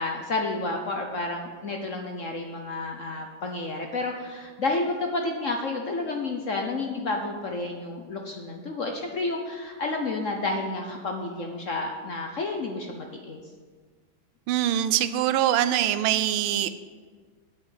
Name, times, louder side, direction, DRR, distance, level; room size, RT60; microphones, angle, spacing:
voice 1, 0.0-13.4, left 2 dB, 55° left, 3 dB, 0.9 m, -30 dB
voice 2, 14.5-16.7, right 11 dB, 90° right, 13 dB, 1.4 m, -23 dB
8.4 x 6.3 x 8.0 m, 1.5 s
omnidirectional pair, 2.2 m